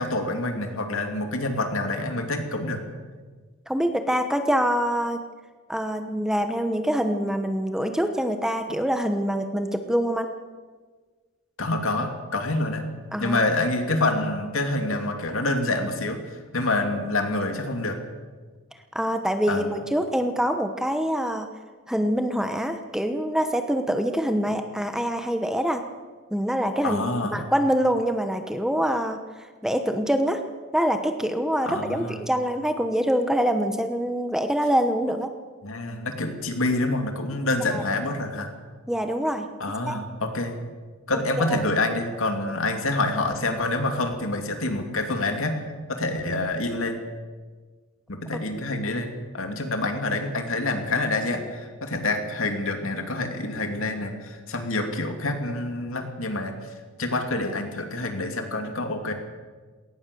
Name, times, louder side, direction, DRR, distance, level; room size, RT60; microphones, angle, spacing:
voice 1, 0.0-2.8 11.6-12.9 13.2-18.0 19.5-19.7 26.8-27.5 31.7-32.2 35.6-38.5 39.6-40.6 41.1-47.0 48.1-56.7 57.0-59.1, left 2 dB, 65° left, 5 dB, 2.8 m, -27 dB
voice 2, 3.7-5.2 5.7-10.3 13.1-13.4 18.9-21.5 21.9-25.8 26.3-27.0 27.3-30.4 30.7-35.3 37.7-37.8 38.9-39.5 39.9-40.0 41.4-41.6, equal, ahead, 7 dB, 1.0 m, -25 dB
20.5 x 18.5 x 7.0 m, 1.5 s
head